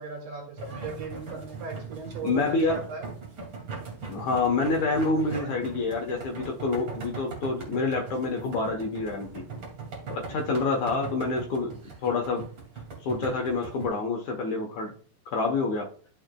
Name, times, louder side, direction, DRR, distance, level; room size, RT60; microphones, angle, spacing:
voice 1, 0.0-3.1, right 4 dB, 70° right, 1 dB, 3.8 m, -38 dB
sound 1, 0.6-13.9, right 4 dB, 35° right, 2.5 m, -40 dB
voice 2, 2.2-2.9 4.1-9.4 10.1-12.4 13.0-14.9 15.3-15.9, left 3 dB, 70° left, 1 dB, 1.8 m, -27 dB
12.0 x 7.2 x 2.3 m, 0.43 s
omnidirectional pair, 4.8 m